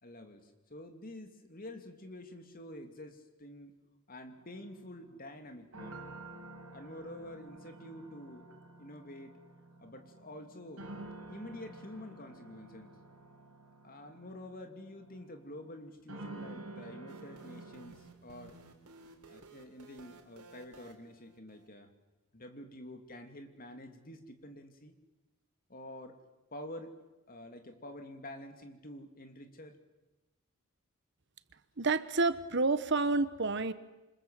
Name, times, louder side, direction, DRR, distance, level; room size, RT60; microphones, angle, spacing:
voice 1, 0.0-3.8 4.1-6.0 6.7-8.5 8.8-9.4 9.8-10.9 11.3-12.9 13.8-18.6 19.3-21.9 22.3-24.9 25.7-26.2 26.5-27.0 27.3-29.8, left 1 dB, 40° left, 6 dB, 2.8 m, -48 dB
sound 1, 4.4-17.9, right 2 dB, 70° right, 4.7 m, -50 dB
sound 2, 17.1-21.7, right 3 dB, 85° right, 3.9 m, -56 dB
voice 2, 31.8-33.7, right 3 dB, 55° right, 13 dB, 1.1 m, -29 dB
27.5 x 26.0 x 7.7 m, 1.0 s
head